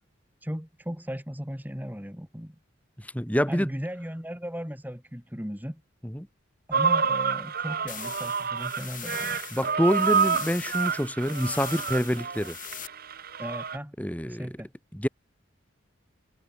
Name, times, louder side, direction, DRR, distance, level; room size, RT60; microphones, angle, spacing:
voice 1, 0.4-2.6 3.5-5.8 6.7-9.4 13.4-14.0 14.3-14.7, equal, 10° right, 3.1 m, -36 dB
voice 2, 3.0-3.7 6.0-6.3 9.5-12.6 14.0-14.5 14.9-15.1, equal, 5° left, 3.8 m, -26 dB
sound 1, 6.7-13.8, right 6 dB, 45° right, 1.1 m, -28 dB
sound 2, 7.9-12.9, left 11 dB, 40° left, 6.1 m, -41 dB
head